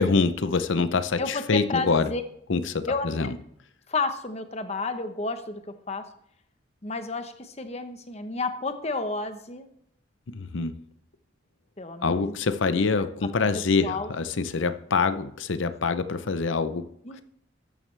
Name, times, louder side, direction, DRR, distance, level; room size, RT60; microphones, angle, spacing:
voice 1, 0.0-2.1 2.5-3.4 10.3-10.8 12.0-16.9, left 4 dB, 70° left, 0.6 m, -25 dB
voice 2, 1.2-2.2 2.9-3.3 3.9-6.1 6.8-9.7 11.8-12.4 13.4-14.1 17.0-17.2, left 3 dB, 30° left, 0.9 m, -31 dB
13.0 x 9.3 x 3.3 m
head